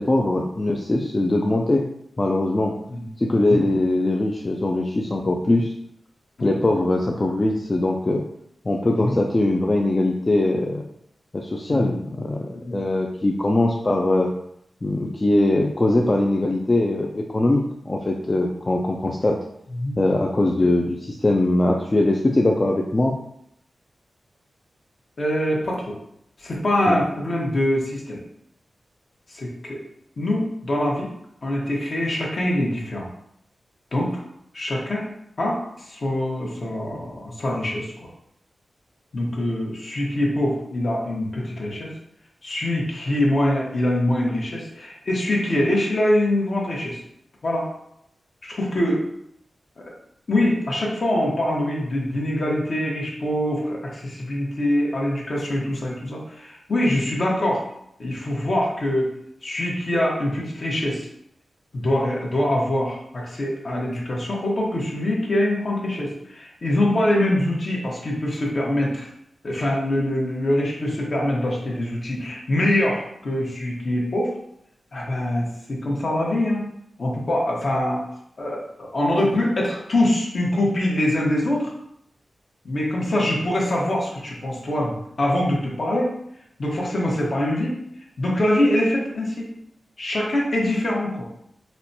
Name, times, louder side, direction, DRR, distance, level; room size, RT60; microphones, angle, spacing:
voice 1, 0.0-1.9 2.2-2.7 3.2-5.7 6.4-8.2 8.7-10.8 11.3-14.3 14.8-19.4 20.0-23.2 26.8-27.0, left 2 dB, 35° left, 0 dB, 0.3 m, -21 dB
voice 2, 25.2-25.9 26.4-28.2 29.3-29.8 30.2-31.1 31.4-33.1 33.9-34.1 34.5-35.0 35.4-35.6 35.9-37.9 39.1-41.9 42.4-47.0 47.4-47.7 48.4-49.0 49.8-49.9 50.3-57.6 58.0-59.1 59.4-61.1 61.7-69.1 69.4-74.3 74.9-76.6 77.0-78.0 78.4-81.7 82.6-86.1 86.6-87.8 88.2-89.5 90.0-91.2, left 1 dB, 55° left, -3 dB, 1.0 m, -24 dB
4.2 x 2.2 x 2.7 m, 0.75 s
cardioid pair, 65°, 0 cm